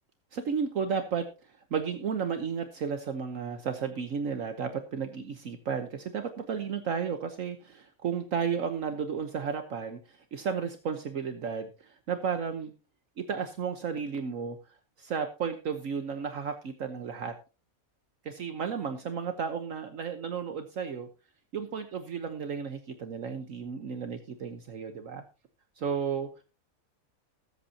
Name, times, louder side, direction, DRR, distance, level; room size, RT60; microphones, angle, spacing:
voice 1, 0.3-1.3 1.7-12.7 13.2-14.6 15.0-17.3 18.2-21.1 21.5-25.2 25.8-26.3, right 6 dB, 65° right, 8 dB, 1.4 m, -33 dB
20.0 x 8.3 x 2.8 m, 0.32 s
omnidirectional pair, 1.5 m